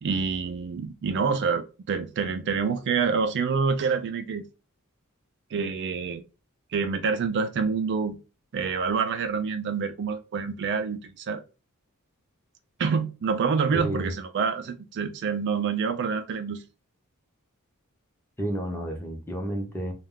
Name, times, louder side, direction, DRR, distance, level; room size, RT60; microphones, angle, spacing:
voice 1, 0.0-4.4 5.5-6.2 6.7-8.2 8.5-11.4 12.8-16.6, right 5 dB, 55° right, 0.4 m, -27 dB
voice 2, 13.7-14.1 18.4-19.9, right 1 dB, 10° left, 0.7 m, -31 dB
2.4 x 2.2 x 3.4 m
head